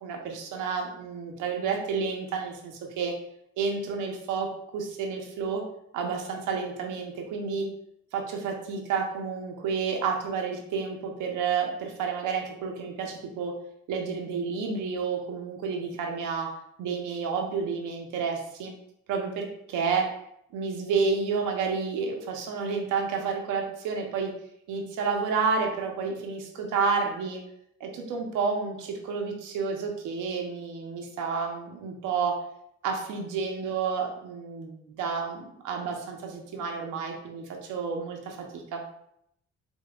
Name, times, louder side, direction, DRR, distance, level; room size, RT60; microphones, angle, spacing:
voice 1, 0.0-3.1 3.6-4.5 4.7-5.6 5.9-7.7 8.1-13.5 13.9-16.5 16.8-18.7 19.1-20.1 20.5-24.3 24.7-27.4 27.8-32.4 32.8-38.8, right 5 dB, 90° right, 2 dB, 0.8 m, -30 dB
5.3 x 2.3 x 2.3 m, 0.74 s
cardioid pair, 90°, 30 cm